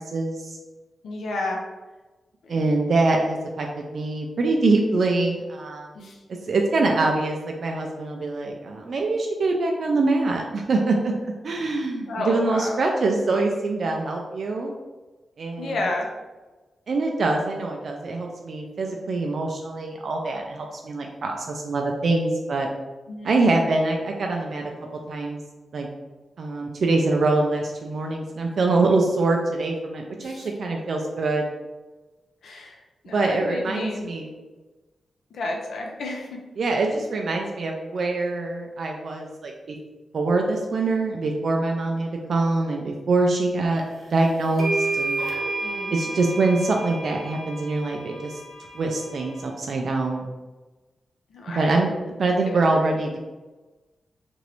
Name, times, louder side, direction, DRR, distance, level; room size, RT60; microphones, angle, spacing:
voice 1, 0.1-0.5 2.5-5.9 6.5-11.1 11.4-14.7 15.4-15.8 16.9-22.7 23.2-24.7 25.1-25.4 25.7-25.9 26.4-31.5 33.1-34.4 36.6-39.8 40.1-43.8 44.1-45.2 45.9-48.4 48.7-50.3 51.6-53.2, right 3 dB, 60° right, 1 dB, 0.3 m, -24 dB
voice 2, 1.0-1.6 2.4-2.6 5.9-6.2 12.1-13.0 15.6-16.1 23.1-23.6 30.2-30.5 32.4-34.1 35.3-36.3 45.6-46.2 51.3-51.7 52.5-52.9, left 2 dB, 85° left, 0 dB, 0.5 m, -32 dB
sound 1, 44.0-44.1 44.6-49.4, right 2 dB, 75° right, 0.9 m, -31 dB
3.0 x 2.5 x 2.9 m, 1.2 s
wide cardioid pair, 140°, 0 cm